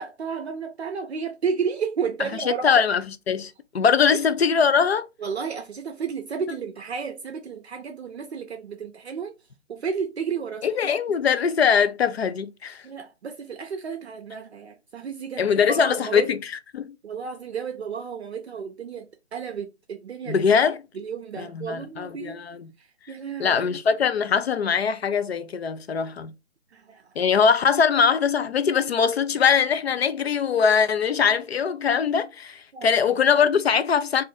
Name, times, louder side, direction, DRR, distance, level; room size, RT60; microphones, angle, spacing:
voice 1, 0.0-2.8 4.1-4.2 5.2-9.3 9.7-11.2 12.8-16.3 17.0-20.4 20.9-22.4 22.8-23.6 26.7-27.0 32.7-32.9, right 6 dB, 60° right, 0.6 m, -32 dB
voice 2, 2.5-5.1 10.6-12.8 15.4-16.4 16.7-17.0 20.3-20.8 21.4-22.7 23.4-26.3 27.2-34.2, left 6 dB, 60° left, 0.5 m, -22 dB
2.6 x 2.5 x 4.0 m
figure-of-eight pair, 160°, 37 cm